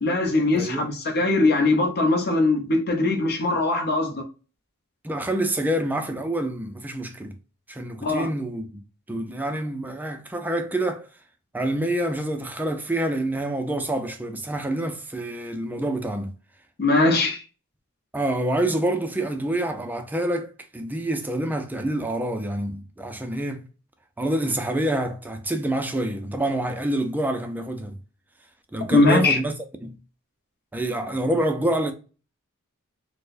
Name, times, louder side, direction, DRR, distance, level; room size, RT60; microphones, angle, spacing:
voice 1, 0.0-4.3 8.0-8.3 16.8-17.4 28.9-29.4, left 2 dB, 50° left, 0.7 m, -21 dB
voice 2, 0.6-0.9 5.0-7.3 7.7-8.8 9.1-11.1 11.5-16.3 18.1-23.7 24.2-28.0 28.7-29.5 29.8-30.0 30.7-31.9, right 1 dB, 10° right, 0.4 m, -27 dB
4.3 x 2.1 x 2.4 m
head